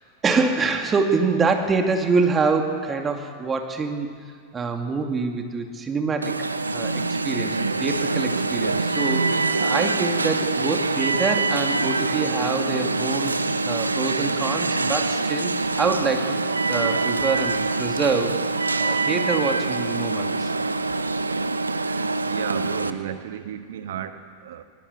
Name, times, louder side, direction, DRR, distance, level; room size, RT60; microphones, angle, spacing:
voice 1, 0.2-4.2 4.5-13.3 13.6-16.4 16.7-18.4 18.8-20.5, right 4 dB, 20° right, 4 dB, 2.5 m, -25 dB
Alarm, 6.2-22.9, right 3 dB, 85° right, 0.9 m, -24 dB
Wind instrument woodwind instrument, 7.4-15.5, left 7 dB, 65° left, 2.0 m, -42 dB
voice 2, 21.8-24.6, right 9 dB, 60° right, 9 dB, 1.4 m, -34 dB
20.5 x 19.5 x 8.4 m, 2.1 s
figure-of-eight pair, 90°, 0 cm